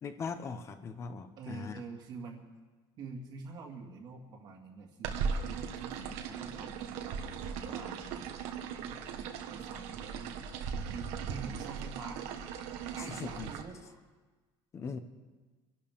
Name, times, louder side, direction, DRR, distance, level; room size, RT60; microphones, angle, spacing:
voice 1, 0.0-1.8 13.0-13.5 14.7-15.0, left 5 dB, 25° left, 10 dB, 0.9 m, -40 dB
voice 2, 1.4-2.4 3.0-8.3 8.8-10.4 10.9-12.2 12.9-13.9, right 4 dB, 40° right, 1 dB, 2.1 m, -46 dB
sound 1, 5.0-13.6, right 6 dB, 85° right, 1.5 m, -38 dB
26.5 x 12.0 x 3.6 m, 1.3 s
cardioid pair, 175°, 11 cm